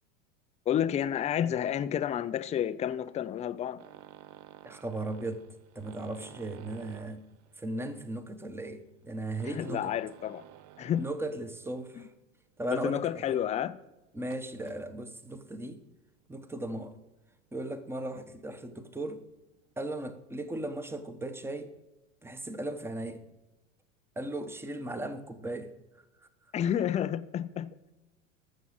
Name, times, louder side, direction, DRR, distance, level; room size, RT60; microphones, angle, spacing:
voice 1, 0.7-3.8 9.4-10.5 10.8-11.1 12.0-12.1 12.7-13.8 26.5-27.8, left 10 dB, 20° left, 0.4 m, -30 dB
sound 1, 3.8-11.6 11.9-12.2 12.7-12.8 13.1-13.2 14.2-14.8 16.0-16.2 16.6-17.1 17.8-17.9 18.2-18.3 18.5-18.6, right 12 dB, 40° right, 0.7 m, -52 dB
voice 2, 4.6-5.5 5.7-7.2 7.6-9.9 11.0-12.1 12.6-13.4 14.1-15.8 16.3-16.9 17.5-19.2 19.8-21.7 22.2-23.2 24.2-25.7, right 1 dB, 5° right, 1.1 m, -37 dB
13.0 x 7.4 x 6.5 m
hypercardioid pair, 105°, 38 cm